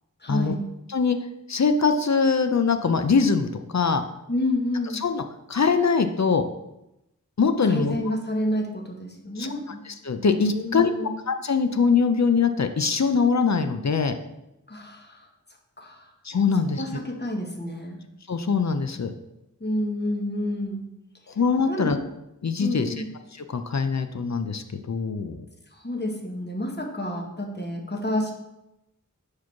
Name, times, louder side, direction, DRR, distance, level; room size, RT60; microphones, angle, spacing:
voice 1, 0.2-0.7 4.3-5.0 7.6-9.8 10.5-11.1 14.7-15.3 15.8-16.1 16.8-18.0 19.6-20.9 21.7-22.0 22.6-23.0 25.7-28.3, left 1 dB, 30° left, 1 dB, 1.1 m, -29 dB
voice 2, 1.5-4.0 4.9-5.2 5.5-6.4 7.4-8.0 9.4-9.5 9.9-14.1 16.2-16.8 18.3-19.1 21.3-22.0 22.4-22.9 23.5-25.4, left 5 dB, 55° left, 8 dB, 0.5 m, -23 dB
4.8 x 4.6 x 5.7 m, 0.89 s
wide cardioid pair, 55°, 33 cm